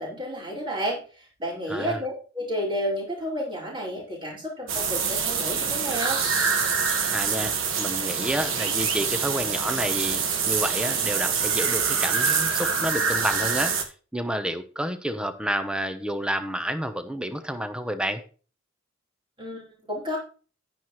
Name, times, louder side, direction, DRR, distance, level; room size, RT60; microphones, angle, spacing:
voice 1, 0.0-6.2 19.4-20.2, equal, 25° right, -5 dB, 4.9 m, -31 dB
voice 2, 1.7-2.0 7.1-18.2, equal, 5° right, 9 dB, 0.9 m, -30 dB
sound 1, 4.7-13.8, right 6 dB, 75° right, 1.4 m, -25 dB
10.5 x 10.0 x 3.2 m, 0.39 s
head